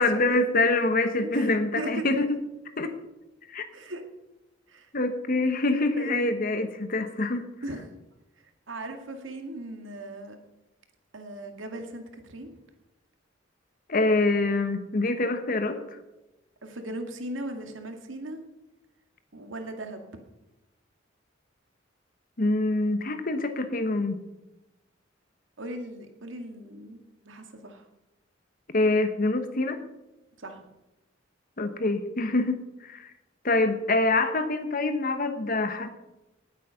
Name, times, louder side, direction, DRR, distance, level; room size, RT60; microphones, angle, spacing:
voice 1, 0.0-2.2 2.8-2.9 3.5-3.7 4.9-7.4 13.9-16.0 22.4-24.2 28.7-29.8 31.6-33.1 33.4-35.9, left 2 dB, 45° left, 9 dB, 1.2 m, -25 dB
voice 2, 1.2-1.5 1.8-2.0 3.7-4.0 4.7-4.9 6.0-6.3 7.6-7.9 8.7-10.4 11.1-12.5 16.6-18.4 19.3-20.1 25.6-27.8 30.4-30.6, right 1 dB, 80° right, 5 dB, 2.1 m, -38 dB
18.0 x 8.3 x 5.8 m, 0.96 s
head